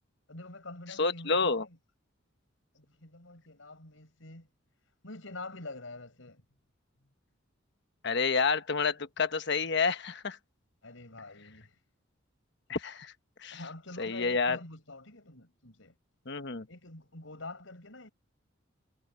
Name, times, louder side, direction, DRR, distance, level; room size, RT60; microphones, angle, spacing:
voice 1, 0.3-1.8 2.7-4.5 5.0-6.4 10.8-11.8 13.5-15.9 16.7-18.1, left 2 dB, 80° left, 5.2 m, -46 dB
voice 2, 1.0-1.7 8.0-10.4 12.7-13.1 13.4-13.6 14.0-14.6 16.3-16.7, left 4 dB, 60° left, 1.2 m, -29 dB
head